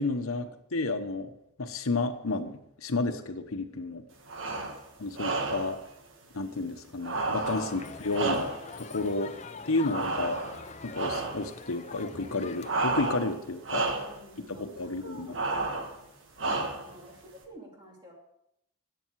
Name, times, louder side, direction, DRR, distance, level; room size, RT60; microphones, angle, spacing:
voice 1, 0.0-1.3 1.6-4.0 5.0-5.8 6.3-8.5 8.8-9.3 9.7-10.4 10.8-13.8 14.5-15.4, left 2 dB, 85° left, 8 dB, 1.0 m, -31 dB
sound 1, 4.3-4.8 5.2-5.8 7.0-8.8 9.9-10.6 10.9-11.5 12.6-13.4 13.6-14.2 15.3-15.9 16.4-17.0, right 3 dB, 65° right, 1.4 m, -31 dB
Crowd, 7.5-12.7, left 4 dB, 30° left, 0.5 m, -44 dB
voice 2, 13.8-15.7 16.5-18.1, equal, 20° right, -1 dB, 2.8 m, -51 dB
13.5 x 9.4 x 4.7 m, 0.79 s
head